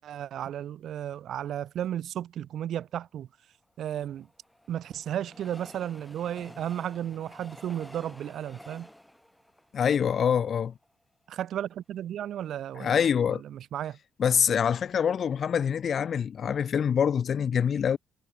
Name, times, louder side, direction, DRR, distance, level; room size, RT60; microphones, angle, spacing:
voice 1, 0.0-3.3 3.8-4.3 4.7-8.9 11.3-13.0 13.3-14.0, right 10 dB, 60° right, 2.7 m, -34 dB
Train, 3.6-10.9 11.4-11.5 11.7-11.8, equal, 5° left, 7.5 m, -51 dB
voice 2, 9.7-10.7 12.8-13.4 14.2-18.0, left 7 dB, 40° left, 0.4 m, -25 dB
cardioid pair, 145°, 0 cm